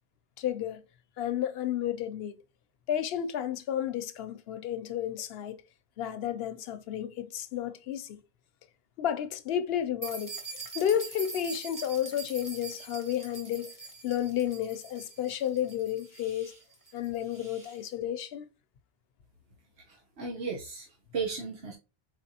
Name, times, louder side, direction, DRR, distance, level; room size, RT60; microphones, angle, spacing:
voice 1, 0.4-0.8 1.2-2.4 2.9-5.6 6.0-8.2 9.0-10.3 10.7-13.7 14.0-16.5 16.9-18.5, left 10 dB, 75° left, 0.8 m, -32 dB
sound 1, 10.0-17.8, right 3 dB, 20° right, 1.0 m, -44 dB
voice 2, 19.8-21.7, right 5 dB, 85° right, 1.3 m, -35 dB
4.6 x 4.2 x 2.8 m
omnidirectional pair, 1.1 m